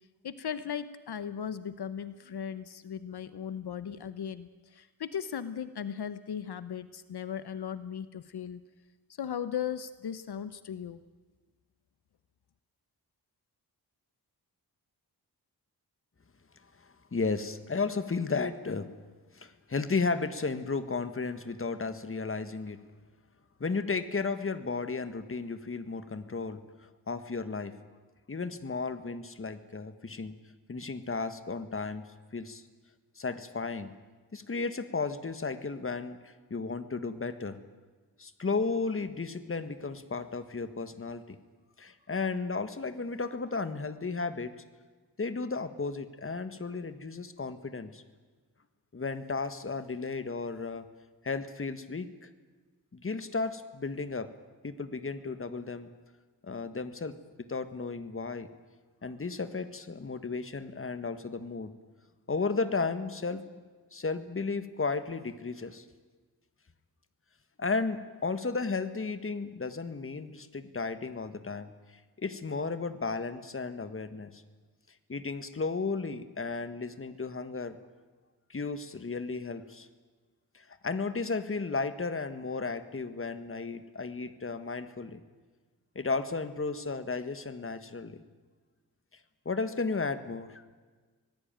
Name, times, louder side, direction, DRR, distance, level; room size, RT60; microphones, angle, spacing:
voice 1, 0.2-8.6 9.2-11.0, left 8 dB, 75° left, 13 dB, 1.0 m, -37 dB
voice 2, 16.8-18.9 19.3-22.8 23.6-27.7 28.3-30.3 30.7-32.0 32.3-32.6 33.2-33.9 34.3-37.6 38.2-41.4 41.8-44.5 45.2-48.0 48.9-50.9 51.2-52.3 52.9-54.3 54.6-55.9 56.4-58.5 59.0-61.7 62.3-63.4 63.9-65.8 67.6-71.7 72.2-74.4 75.1-77.8 78.5-79.9 80.5-85.2 85.9-88.2 89.4-90.6, left 4 dB, 35° left, 11 dB, 1.7 m, -34 dB
25.5 x 19.0 x 9.1 m, 1.4 s
wide cardioid pair, 120°, 39 cm